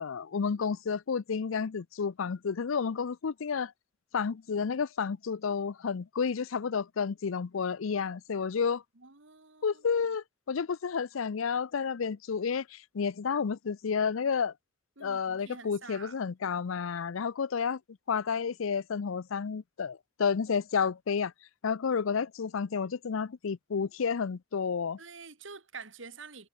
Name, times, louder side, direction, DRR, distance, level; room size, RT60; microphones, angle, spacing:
voice 1, 0.0-3.7 4.1-8.8 9.6-14.5 15.0-17.8 18.1-21.3 21.6-25.0, left 6 dB, 75° left, 0.5 m, -31 dB
voice 2, 9.0-9.8 15.0-16.1 25.0-26.5, right 4 dB, 65° right, 2.5 m, -47 dB
head